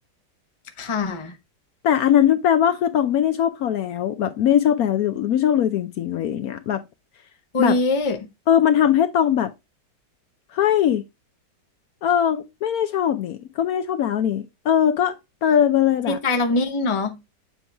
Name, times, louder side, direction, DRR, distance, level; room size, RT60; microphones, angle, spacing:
voice 1, 0.8-1.4 7.5-8.2 16.1-17.1, left 2 dB, 25° left, 0.7 m, -23 dB
voice 2, 1.8-6.8 7.6-7.8 8.5-9.5 10.5-11.0 12.0-16.2, left 9 dB, 70° left, 1.0 m, -20 dB
7.8 x 4.5 x 3.4 m
omnidirectional pair, 1.8 m